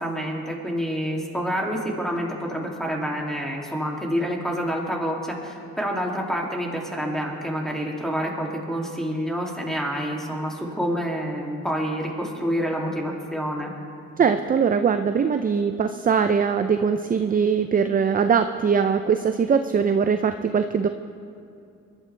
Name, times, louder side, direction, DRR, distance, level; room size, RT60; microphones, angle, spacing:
voice 1, 0.0-13.7, equal, ahead, -1 dB, 2.6 m, -28 dB
voice 2, 14.2-20.9, right 6 dB, 30° right, 8 dB, 0.5 m, -21 dB
22.0 x 12.0 x 3.4 m, 2.5 s
cardioid pair, 90°, 30 cm